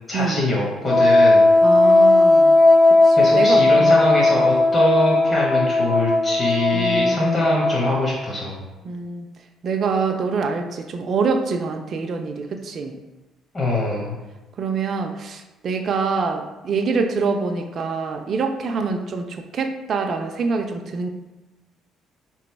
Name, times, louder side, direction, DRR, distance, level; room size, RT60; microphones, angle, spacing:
voice 1, 0.1-1.5 3.2-8.6 13.5-14.2, left 1 dB, 35° left, -4 dB, 1.0 m, -23 dB
Wind instrument woodwind instrument, 0.9-8.2, left 2 dB, 15° left, 0.7 m, -16 dB
voice 2, 1.6-2.6 3.0-4.1 6.7-7.5 8.8-9.3 9.6-13.0 14.6-21.1, right 4 dB, 50° right, 4 dB, 0.4 m, -25 dB
3.3 x 3.0 x 4.4 m, 1.1 s
cardioid pair, 95°, 0 cm